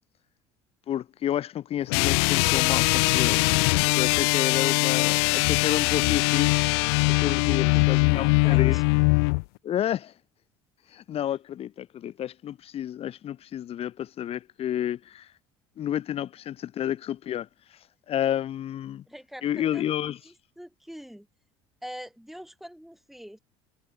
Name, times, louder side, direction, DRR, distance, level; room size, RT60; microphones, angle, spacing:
voice 1, 0.9-3.4 3.9-6.7 7.1-8.8 9.6-10.1 10.9-15.3 15.8-17.5 18.1-19.0 19.4-20.2, left 11 dB, 45° left, 1.0 m, -30 dB
sound 1, 1.9-9.4, left 32 dB, 75° left, 0.5 m, -22 dB
voice 2, 7.2-8.8 19.1-19.8 20.2-21.3 21.8-23.4, equal, ahead, 7.2 m, -44 dB
hypercardioid pair, 75°, 14 cm